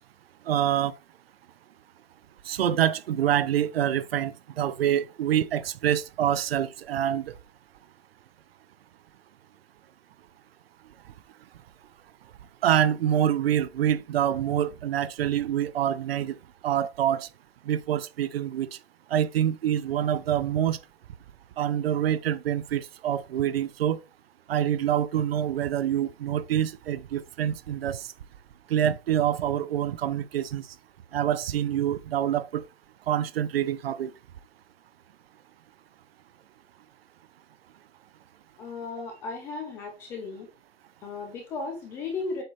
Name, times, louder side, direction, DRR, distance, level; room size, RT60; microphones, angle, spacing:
voice 1, 0.5-0.9 2.5-7.3 12.6-16.4 16.6-17.3 17.7-18.7 19.1-20.8 21.6-24.0 24.5-28.1 28.7-30.6 31.1-32.6 33.1-34.1, right 10 dB, 65° right, 0.7 m, -26 dB
voice 2, 38.6-40.5 41.0-42.4, left 4 dB, 5° left, 0.4 m, -35 dB
7.8 x 4.2 x 3.1 m
hypercardioid pair, 170°, 33 cm